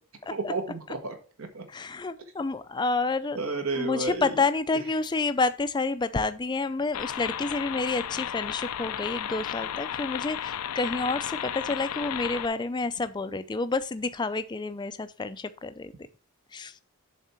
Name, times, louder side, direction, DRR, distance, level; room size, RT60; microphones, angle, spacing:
voice 1, 0.3-1.7 3.3-4.4, right 3 dB, 75° right, 6 dB, 1.4 m, -32 dB
voice 2, 1.7-3.4 3.8-15.9 16.5-16.8, left 3 dB, 20° left, 12 dB, 0.4 m, -29 dB
sound 1, 6.9-12.5, left 10 dB, 90° left, 0.4 m, -34 dB
7.4 x 3.6 x 5.7 m, 0.39 s
head